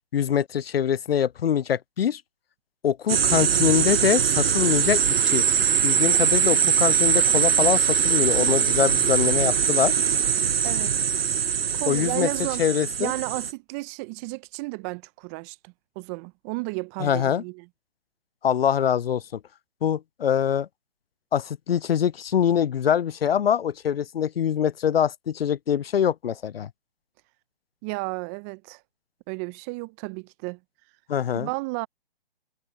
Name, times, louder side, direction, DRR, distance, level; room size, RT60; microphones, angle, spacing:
voice 1, 0.1-2.2 2.8-5.4 5.8-10.0 11.9-12.3 12.6-13.1 17.0-17.4 18.4-19.4 19.8-20.7 21.3-26.7 31.1-31.5, left 9 dB, 70° left, 0.5 m, -24 dB
sound 1, 3.1-13.5, right 7 dB, 70° right, 0.8 m, -22 dB
voice 2, 10.6-11.0 11.7-12.6 13.0-17.7 27.8-28.8 29.3-30.6 31.3-31.9, right 28 dB, 15° right, 0.6 m, -33 dB
figure-of-eight pair, 140°, 31 cm